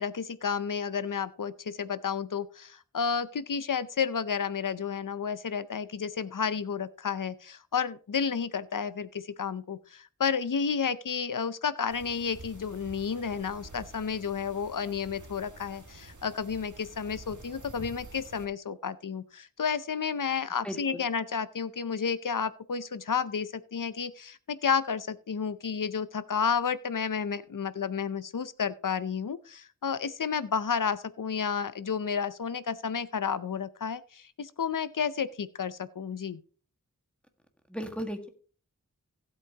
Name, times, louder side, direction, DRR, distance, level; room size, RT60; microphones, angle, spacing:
voice 1, 0.0-36.4, left 6 dB, 80° left, 15 dB, 0.6 m, -31 dB
sound 1, 11.9-18.4, right 2 dB, 65° right, 1.7 m, -48 dB
voice 2, 20.6-21.0 37.7-38.3, equal, 5° left, 5 dB, 1.7 m, -36 dB
16.0 x 8.2 x 2.9 m, 0.40 s
wide cardioid pair, 55°, 32 cm